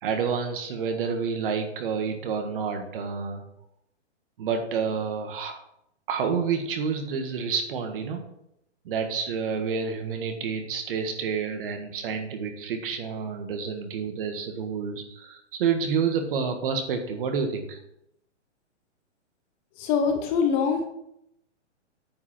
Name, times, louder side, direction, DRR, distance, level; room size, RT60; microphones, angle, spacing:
voice 1, 0.0-3.4 4.4-5.5 6.1-8.2 8.9-17.8, right 6 dB, 50° right, 5 dB, 1.6 m, -29 dB
voice 2, 19.8-20.9, left 6 dB, 20° left, 5 dB, 0.8 m, -24 dB
9.4 x 5.1 x 5.8 m, 0.78 s
hypercardioid pair, 150°, 36 cm